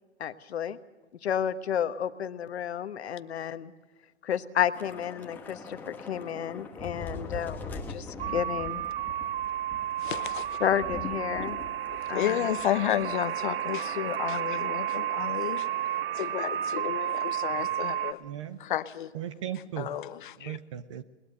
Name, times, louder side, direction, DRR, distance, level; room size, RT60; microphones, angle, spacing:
voice 1, 0.2-0.8 1.2-3.7 4.2-8.8 10.6-11.6 12.1-12.4, left 9 dB, 65° left, 11 dB, 1.2 m, -31 dB
Thunder / Rain, 4.7-13.3 13.6-13.8 14.1-14.4, left 3 dB, 5° left, 1.1 m, -42 dB
sound 1, 8.2-18.1, right 11 dB, 55° right, 1.1 m, -32 dB
voice 2, 10.0-10.6 12.1-15.7 16.1-18.2 18.6-19.1 19.8-20.6, left 12 dB, 45° left, 14 dB, 0.8 m, -32 dB
voice 3, 18.2-18.6 19.1-20.0 20.4-21.0, right 11 dB, 25° right, 14 dB, 0.6 m, -37 dB
20.5 x 20.0 x 6.5 m, 1.2 s
hypercardioid pair, 150°, 35 cm